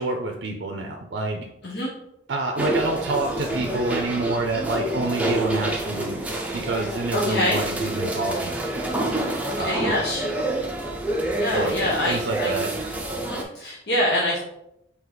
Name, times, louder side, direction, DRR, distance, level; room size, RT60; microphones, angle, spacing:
voice 1, 0.0-1.5 2.3-8.9 9.6-9.9 11.5-12.7, right 2 dB, 90° right, 2 dB, 0.5 m, -28 dB
sound 1, 2.6-13.4, right 1 dB, 10° right, 0.5 m, -27 dB
voice 2, 7.1-7.6 9.5-10.2 11.3-12.5 13.2-14.4, left 1 dB, 70° left, -6 dB, 1.0 m, -25 dB
4.5 x 2.9 x 4.0 m, 0.79 s
head